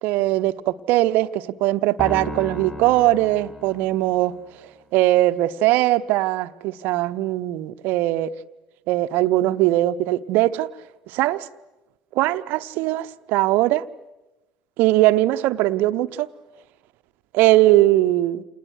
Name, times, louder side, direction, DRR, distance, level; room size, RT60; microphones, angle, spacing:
voice 1, 0.0-0.5 0.9-4.4 4.9-8.3 8.9-10.7 11.1-11.5 12.1-13.8 14.8-16.3 17.3-18.4, right 16 dB, 60° right, 0.9 m, -20 dB
sound 1, 2.0-4.4, equal, 20° left, 7.0 m, -35 dB
29.5 x 28.5 x 6.5 m
figure-of-eight pair, 60°, 4 cm